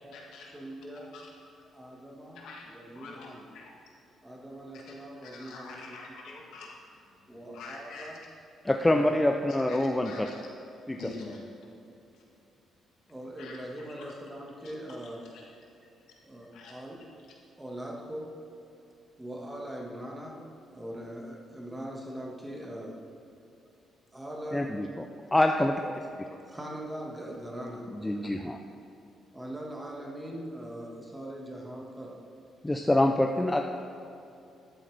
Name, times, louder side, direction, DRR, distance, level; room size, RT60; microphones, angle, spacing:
voice 1, 0.0-0.6 0.9-1.3 2.3-4.0 4.9-5.0 5.2-8.2 9.7-10.5 11.0-11.4 12.1-12.2 13.4-14.1 14.6-14.7 15.0-15.7 16.5-16.8, left 3 dB, 80° left, -1 dB, 1.6 m, -47 dB
voice 2, 0.5-1.1 1.7-3.5 4.2-6.4 7.3-8.2 8.7-9.6 13.1-15.3 16.2-17.1 17.6-18.4 19.2-20.4 20.7-23.0 24.1-24.7 25.6-25.9 26.3-28.3 29.3-32.2, right 1 dB, 15° right, -1 dB, 1.6 m, -41 dB
voice 3, 8.7-10.1 10.9-11.0 24.5-25.1 25.3-25.7 27.9-28.6 32.6-33.6, left 1 dB, 10° left, 3 dB, 0.5 m, -25 dB
12.0 x 7.7 x 3.4 m, 2.7 s
cardioid pair, 90°, 0 cm